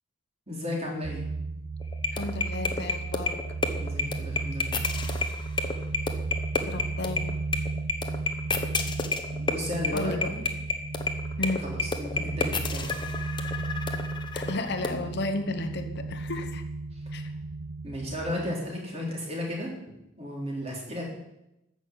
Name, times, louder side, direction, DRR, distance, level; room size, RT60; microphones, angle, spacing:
voice 1, 0.5-1.3 3.8-4.9 9.4-10.4 11.6-12.9 17.8-19.7 20.2-21.0, left 1 dB, 30° right, -2 dB, 3.8 m, -34 dB
sound 1, 1.0-18.3, right 3 dB, 70° right, 0.9 m, -35 dB
sound 2, 1.8-14.9, left 3 dB, 25° left, 1.0 m, -29 dB
voice 2, 2.1-3.4 6.6-7.3 9.9-10.3 11.4-11.6 14.3-16.6 17.1-17.3, left 2 dB, 55° left, 8 dB, 1.0 m, -33 dB
13.5 x 6.3 x 8.5 m, 0.86 s
head